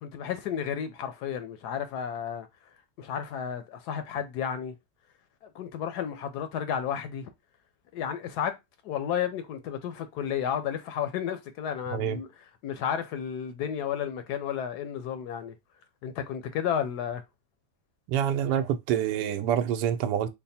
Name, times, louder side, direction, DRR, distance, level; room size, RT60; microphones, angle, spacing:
voice 1, 0.0-2.5 3.0-4.7 5.4-7.3 7.9-8.5 8.8-12.3 12.6-15.6 16.0-17.2, left 8 dB, 80° left, 1.2 m, -32 dB
voice 2, 18.1-20.3, right 9 dB, 85° right, 1.2 m, -27 dB
3.3 x 2.2 x 4.1 m
omnidirectional pair, 1.8 m